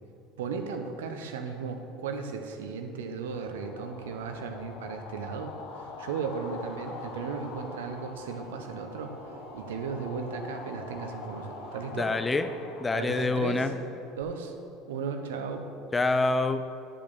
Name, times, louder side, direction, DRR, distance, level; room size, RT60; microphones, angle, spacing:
voice 1, 0.4-9.1 9.5-12.1 12.9-13.7 14.1-14.5 14.9-15.7, right 5 dB, 80° right, 5 dB, 0.9 m, -36 dB
sound 1, 3.1-14.2, left 4 dB, 60° left, 1.0 m, -45 dB
sound 2, 6.5-12.2, right 2 dB, 90° left, 2.1 m, -49 dB
voice 2, 12.0-12.5 12.8-13.7 15.9-16.6, left 3 dB, 20° left, 9 dB, 0.7 m, -26 dB
10.5 x 5.4 x 6.9 m, 2.7 s
hypercardioid pair, 75°, 0 cm